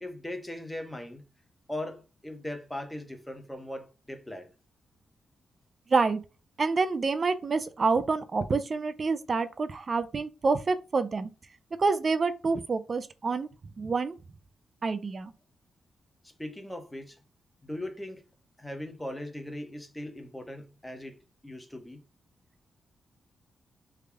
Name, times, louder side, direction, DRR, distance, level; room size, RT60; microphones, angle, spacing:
voice 1, 0.0-1.2 1.7-4.5 16.2-17.2 17.6-18.2 18.6-21.2 21.4-22.0, left 1 dB, 10° left, 1.0 m, -39 dB
voice 2, 5.9-6.2 6.6-11.3 11.7-13.5 13.8-14.2 14.8-15.3, right 4 dB, 50° right, 0.5 m, -27 dB
3.5 x 2.3 x 3.3 m
supercardioid pair, 50°, 0 cm